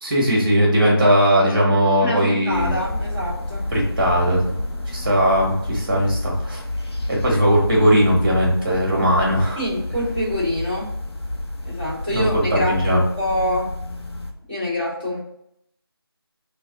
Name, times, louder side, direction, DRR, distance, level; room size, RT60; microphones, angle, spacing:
voice 1, 0.0-2.7 3.7-4.5 4.9-6.6 7.1-9.6 12.1-13.0, equal, 20° right, -3 dB, 1.3 m, -18 dB
voice 2, 2.0-3.7 9.5-10.9 11.6-13.7 14.5-15.2, equal, 25° left, -9 dB, 1.5 m, -26 dB
sound 1, 2.5-14.3, left 2 dB, 85° left, 0.8 m, -30 dB
4.2 x 2.3 x 3.8 m, 0.74 s
figure-of-eight pair, 170°, 13 cm